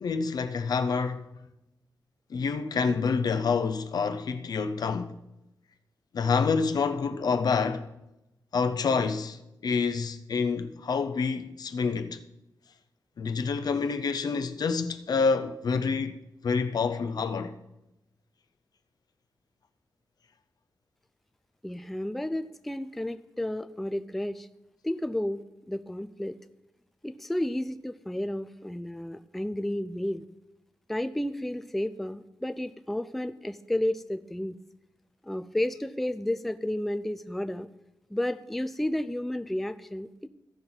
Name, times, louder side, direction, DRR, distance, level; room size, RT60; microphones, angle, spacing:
voice 1, 0.0-1.3 2.3-5.2 6.1-7.9 8.5-12.2 13.2-16.2 16.4-17.6, left 5 dB, 65° left, 0.6 m, -27 dB
voice 2, 21.6-24.5 24.8-25.4 25.7-26.4 27.0-30.2 30.9-34.6 35.2-37.7 38.1-40.3, left 1 dB, ahead, 0.3 m, -32 dB
15.5 x 5.9 x 4.0 m
wide cardioid pair, 165°, 7 cm